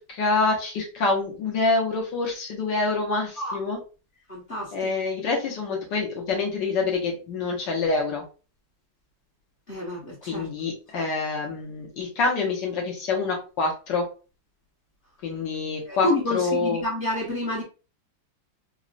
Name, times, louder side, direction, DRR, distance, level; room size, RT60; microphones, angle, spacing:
voice 1, 0.0-3.8 4.7-8.2 10.2-14.0 15.2-16.8, left 3 dB, 70° left, -1 dB, 1.4 m, -26 dB
voice 2, 4.3-4.7 9.7-10.5 10.9-11.1 15.9-17.6, left 1 dB, 35° left, -7 dB, 0.9 m, -29 dB
3.9 x 2.1 x 2.4 m, 0.34 s
omnidirectional pair, 2.2 m